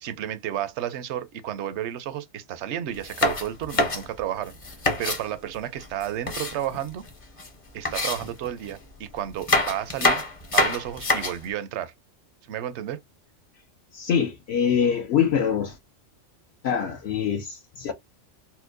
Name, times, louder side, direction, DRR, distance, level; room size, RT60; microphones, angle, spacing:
voice 1, 0.0-4.6 5.0-7.0 7.7-10.2 10.5-11.9 12.5-13.0, right 11 dB, 70° right, 0.8 m, -32 dB
sound 1, 2.9-5.2 5.8-7.1 7.4-7.5 7.9-8.8 9.3-11.5, left 2 dB, 35° left, 0.7 m, -26 dB
voice 2, 13.9-15.8 16.6-17.9, left 7 dB, 65° left, 0.8 m, -24 dB
4.3 x 2.1 x 2.5 m
omnidirectional pair, 1.3 m